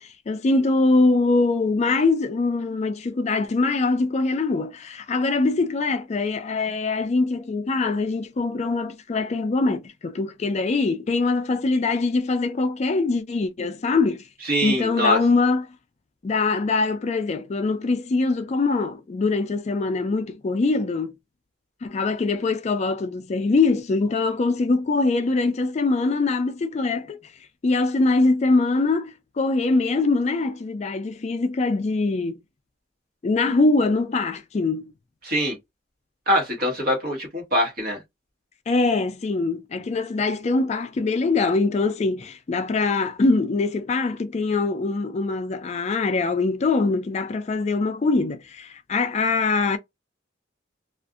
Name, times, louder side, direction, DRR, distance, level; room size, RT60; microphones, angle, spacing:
voice 1, 0.0-14.2 14.6-15.7 16.2-21.1 21.8-27.3 27.6-32.4 33.2-34.9 38.7-49.8, left 3 dB, 35° left, 0.3 m, -23 dB
voice 2, 14.4-15.2 35.2-35.6 36.3-38.0, equal, 50° right, 1.3 m, -23 dB
2.5 x 2.4 x 2.4 m
head